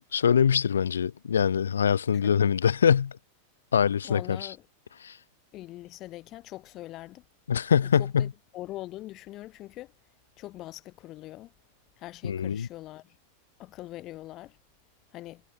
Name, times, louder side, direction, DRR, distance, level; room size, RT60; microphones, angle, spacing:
voice 1, 0.1-3.1 3.7-4.4 5.0-5.1 7.5-8.3 12.2-12.7, left 7 dB, 70° left, 4.3 m, -23 dB
voice 2, 4.0-4.6 5.5-7.2 7.8-9.9 10.4-11.5 12.0-13.2 13.6-14.6 15.1-15.4, left 16 dB, 35° left, 7.0 m, -42 dB
figure-of-eight pair, 90°, 0 cm